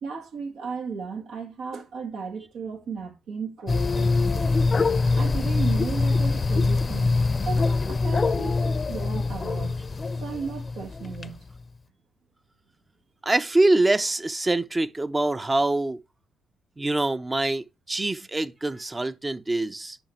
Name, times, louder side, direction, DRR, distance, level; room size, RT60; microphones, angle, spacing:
voice 1, 0.0-4.5 5.1-7.1 7.4-9.8 10.2-11.4, right 5 dB, 70° right, 1.7 m, -35 dB
sound 1, 3.7-11.3, left 3 dB, 35° left, 0.8 m, -24 dB
voice 2, 13.2-16.0 16.8-20.0, right 2 dB, 25° right, 0.9 m, -24 dB
10.0 x 5.7 x 3.2 m
hypercardioid pair, 45°, 0 cm